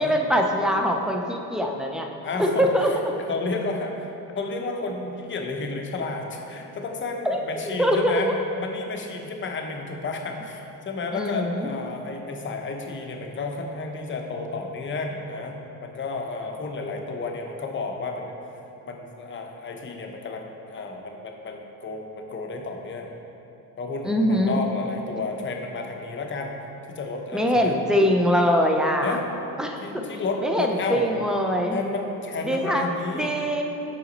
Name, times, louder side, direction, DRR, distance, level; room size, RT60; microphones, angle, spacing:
voice 1, 0.0-2.1 2.4-2.9 7.3-7.4 7.8-8.4 11.1-11.7 24.0-24.6 27.3-29.2 29.6-31.8 32.4-32.9 33.1-33.6, equal, ahead, 2 dB, 0.4 m, -23 dB
voice 2, 2.2-8.3 8.6-18.4 18.8-23.1 23.8-26.5 26.9-27.8 29.0-29.2 29.8-31.1 31.7-33.3, left 3 dB, 35° left, 2 dB, 0.6 m, -32 dB
5.8 x 5.0 x 4.0 m, 2.9 s
cardioid pair, 120°, 36 cm